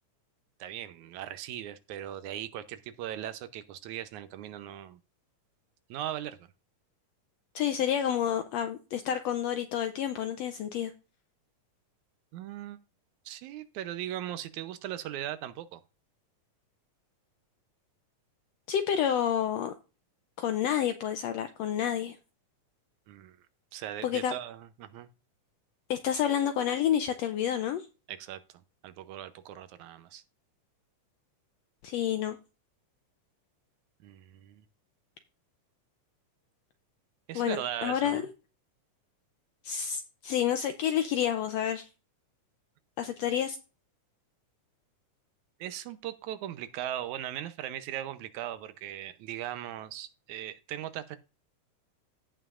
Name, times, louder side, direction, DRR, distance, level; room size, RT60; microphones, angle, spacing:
voice 1, 0.6-5.0 5.9-6.4 12.3-12.8 13.3-15.8 23.1-23.4 23.7-25.1 28.1-28.4 28.8-30.2 34.0-34.6 37.3-38.3 45.6-51.2, right 12 dB, 75° right, 2.0 m, -39 dB
voice 2, 7.5-10.9 18.7-19.7 20.4-22.2 24.0-24.3 25.9-27.9 31.8-32.4 37.3-38.2 39.6-41.9 43.0-43.6, left 9 dB, 80° left, 1.5 m, -29 dB
16.0 x 5.6 x 2.4 m
omnidirectional pair, 3.6 m